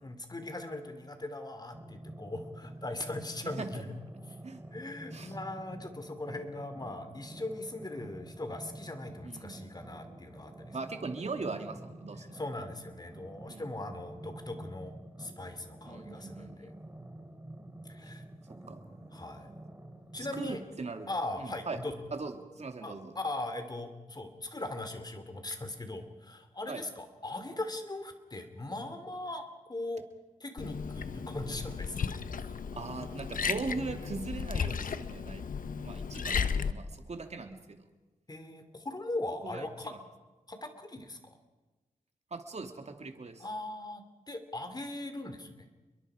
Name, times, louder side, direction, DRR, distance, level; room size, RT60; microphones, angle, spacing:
voice 1, 0.0-3.9 4.7-10.7 12.3-16.5 17.9-18.2 19.1-19.5 20.1-20.6 21.1-21.9 22.8-30.1 30.4-32.1 38.3-39.9 40.5-41.2 43.4-45.7, left 2 dB, 30° left, 8 dB, 3.0 m, -39 dB
sound 1, 1.7-20.6, right 1 dB, 15° right, 4.1 m, -48 dB
voice 2, 3.4-3.8 4.4-4.6 5.1-5.4 9.2-9.6 10.7-12.4 13.5-13.7 15.9-16.7 18.7-18.8 20.2-21.1 21.4-21.8 22.1-23.2 26.7-26.8 32.7-35.4 35.8-37.8 39.4-40.0 42.3-43.5, right 3 dB, 50° right, 5 dB, 2.4 m, -40 dB
Liquid, 30.6-36.7, left 6 dB, 75° left, 1.0 m, -34 dB
29.0 x 22.5 x 5.0 m, 1.2 s
wide cardioid pair, 85°, 14 cm